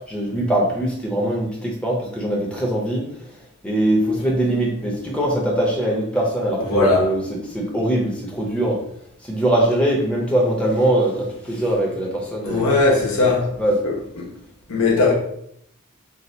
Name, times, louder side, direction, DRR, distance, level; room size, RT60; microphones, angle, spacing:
voice 1, 0.1-3.0 3.6-7.2 7.5-8.8 9.3-12.7 13.6-13.8, right 1 dB, 5° left, 0.6 m, -21 dB
voice 2, 6.7-7.2 12.4-13.5 13.8-14.3 14.7-15.1, left 3 dB, 85° left, 0.8 m, -19 dB
2.7 x 2.3 x 4.2 m
head